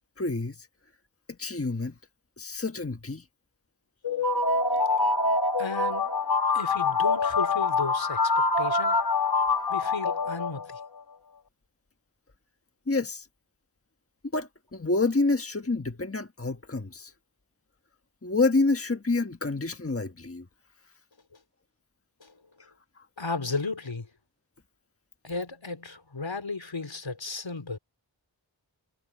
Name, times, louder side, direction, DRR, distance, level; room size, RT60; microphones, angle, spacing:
voice 1, 0.2-0.7 1.4-1.9 2.4-3.2 12.9-13.3 14.3-17.1 18.2-20.5, left 3 dB, 30° left, 1.5 m, -28 dB
sound 1, 4.0-10.9, left 3 dB, 55° left, 1.9 m, -25 dB
voice 2, 5.6-6.1 6.5-9.0 9.7-10.8 22.2-22.3 23.2-24.1 25.2-27.8, left 3 dB, 80° left, 3.3 m, -34 dB
wide cardioid pair, 55°, 44 cm